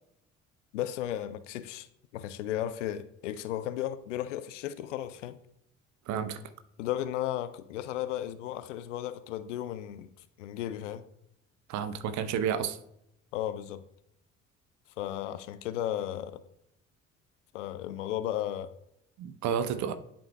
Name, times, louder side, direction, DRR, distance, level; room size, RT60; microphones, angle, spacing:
voice 1, 0.7-1.9 2.1-5.4 6.8-10.1 10.4-11.0 13.3-13.8 15.0-16.4 17.5-18.7, left 12 dB, 75° left, 0.5 m, -34 dB
voice 2, 6.1-6.4 11.7-12.8 19.2-19.9, right 8 dB, 50° right, 0.7 m, -31 dB
11.0 x 4.4 x 2.2 m
figure-of-eight pair, 45°, 37 cm